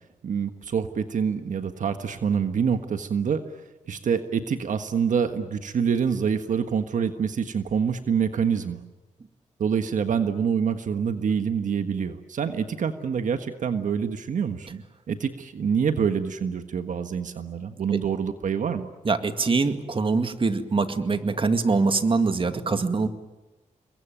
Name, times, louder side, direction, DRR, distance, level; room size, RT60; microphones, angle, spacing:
voice 1, 0.2-3.4 3.9-8.8 9.6-18.9, right 7 dB, 75° right, 8 dB, 1.5 m, -26 dB
voice 2, 19.0-23.1, right 4 dB, 45° right, 8 dB, 2.1 m, -23 dB
28.5 x 22.5 x 9.1 m, 1.1 s
cardioid pair, 90°, 13 cm